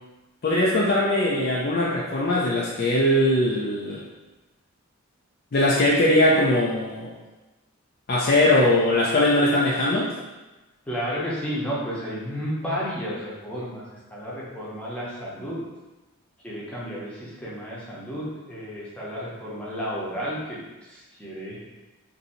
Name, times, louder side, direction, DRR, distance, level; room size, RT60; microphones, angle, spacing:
voice 1, 0.4-4.0 5.5-7.1 8.1-10.1, left 1 dB, 45° left, -5 dB, 0.4 m, -21 dB
voice 2, 10.9-15.6 16.4-21.6, equal, 5° left, -8 dB, 0.7 m, -32 dB
2.6 x 2.6 x 4.2 m, 1.1 s
head